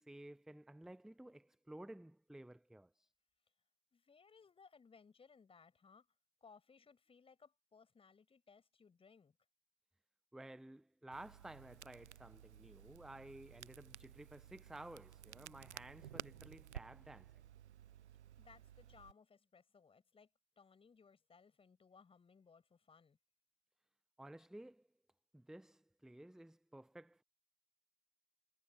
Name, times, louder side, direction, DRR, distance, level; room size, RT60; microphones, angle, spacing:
voice 1, 0.0-3.1 10.3-17.4 24.2-24.9 25.3-27.2, right 1 dB, ahead, 0.8 m, -54 dB
voice 2, 3.9-6.1 6.4-9.4 18.4-20.3 20.6-23.2, left 5 dB, 15° left, 7.1 m, -64 dB
Crackle, 11.1-19.1, right 10 dB, 80° right, 0.7 m, -55 dB
sound 1, 15.1-18.2, right 26 dB, 50° right, 1.4 m, -68 dB
hypercardioid pair, 100°, 34 cm